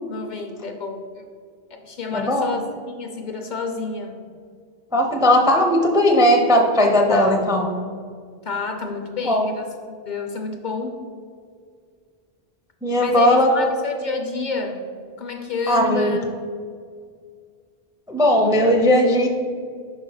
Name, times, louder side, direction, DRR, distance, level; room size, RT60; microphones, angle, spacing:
voice 1, 0.1-1.2 1.7-4.2 7.1-7.4 8.4-9.7 10.1-11.0 13.0-14.8 15.2-16.3, left 4 dB, 55° left, 4 dB, 0.6 m, -29 dB
voice 2, 2.1-2.5 4.9-7.7 9.2-9.5 12.8-13.7 15.7-16.2 18.1-19.3, left 1 dB, 5° right, 2 dB, 0.3 m, -17 dB
5.4 x 4.1 x 5.5 m, 2.1 s
omnidirectional pair, 1.0 m